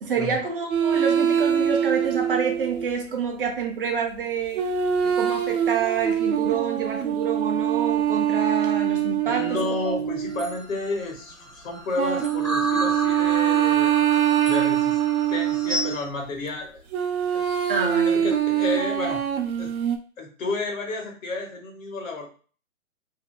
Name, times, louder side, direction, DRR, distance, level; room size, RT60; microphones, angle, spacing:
voice 1, 0.0-4.7 5.0-9.6 9.9-10.0 17.7-18.3, right 6 dB, 40° right, 3 dB, 0.6 m, -28 dB
sound 1, 0.7-2.9 4.5-10.6 12.0-16.0 16.9-20.0, right 9 dB, 90° right, 0.6 m, -23 dB
voice 2, 9.2-13.9 14.5-15.0 15.3-16.8 17.3-17.4 18.1-19.2 19.6-19.7 20.2-22.3, left 3 dB, 65° left, 2 dB, 1.1 m, -31 dB
sound 2, 10.3-16.0, equal, 10° left, 1.2 m, -33 dB
3.2 x 2.7 x 2.2 m, 0.39 s
hypercardioid pair, 145°, 42 cm